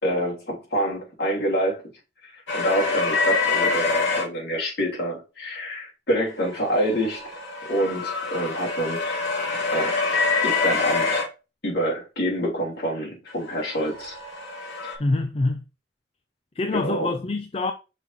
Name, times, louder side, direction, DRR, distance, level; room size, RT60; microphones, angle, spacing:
voice 1, 0.0-1.8 2.3-7.4 7.7-9.2 9.7-11.3 11.6-14.2 14.8-15.0 16.7-17.1, equal, 55° left, 3.3 m, -27 dB
sound 1, 2.5-4.3 6.6-11.3 13.6-14.9, left 4 dB, 80° left, 2.0 m, -25 dB
voice 2, 15.0-15.6 16.6-17.7, left 2 dB, 30° left, 0.4 m, -25 dB
6.0 x 3.7 x 4.3 m
head